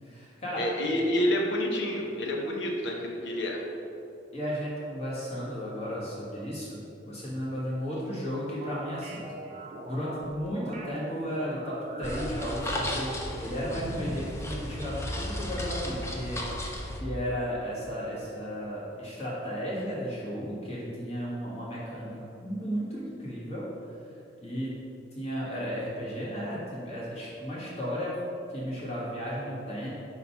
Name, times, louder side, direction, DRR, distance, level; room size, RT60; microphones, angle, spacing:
voice 1, 0.0-1.0 4.3-6.8 7.1-9.2 9.8-16.4 17.0-24.0 24.4-24.7 25.1-28.2 28.5-29.9, equal, 35° left, -7 dB, 1.4 m, -34 dB
voice 2, 0.6-3.6, left 1 dB, 70° left, 0 dB, 0.8 m, -28 dB
sound 1, 8.6-11.0 11.5-13.3 13.7-14.2, right 1 dB, 35° right, 0.7 m, -41 dB
sound 2, 12.0-17.0, left 1 dB, 15° left, 0.4 m, -35 dB
4.4 x 3.9 x 5.5 m, 2.8 s
head